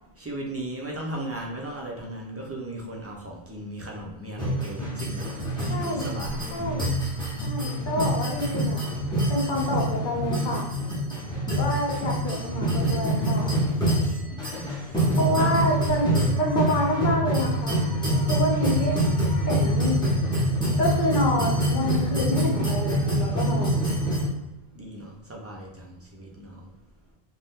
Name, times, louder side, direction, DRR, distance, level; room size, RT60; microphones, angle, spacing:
voice 1, 0.2-5.3 5.7-6.6 14.0-15.1 15.3-15.5 24.7-26.7, right 1 dB, 25° right, -2 dB, 0.3 m, -37 dB
sound 1, 4.4-24.3, right 1 dB, 5° left, 0.7 m, -25 dB
voice 2, 5.7-6.1 6.5-6.9 7.4-8.9 9.3-10.6 11.6-13.5 15.1-17.8 18.3-19.0 19.4-19.9 20.8-23.9, left 1 dB, 55° left, -1 dB, 0.9 m, -27 dB
2.7 x 2.2 x 3.5 m, 0.97 s
omnidirectional pair, 1.0 m